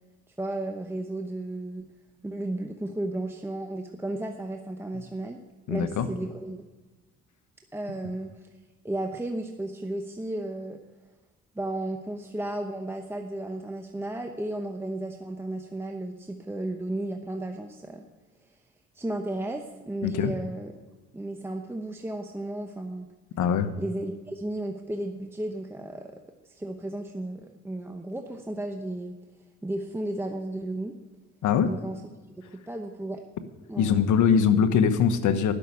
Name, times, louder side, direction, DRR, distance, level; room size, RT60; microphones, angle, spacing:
voice 1, 0.4-1.9 2.2-5.4 5.7-6.6 7.7-8.5 8.8-10.8 11.5-18.0 18.9-20.7 21.1-23.1 23.8-26.1 26.4-29.2 29.6-31.0 31.6-32.0 32.4-33.2 33.7-34.0, right 1 dB, 10° right, 4 dB, 0.9 m, -34 dB
voice 2, 5.7-6.1 20.0-20.3 23.4-23.7 31.4-31.7 33.8-35.5, left 7 dB, 75° left, 10 dB, 1.1 m, -22 dB
12.0 x 6.5 x 8.4 m, 1.2 s
cardioid pair, 90°, 30 cm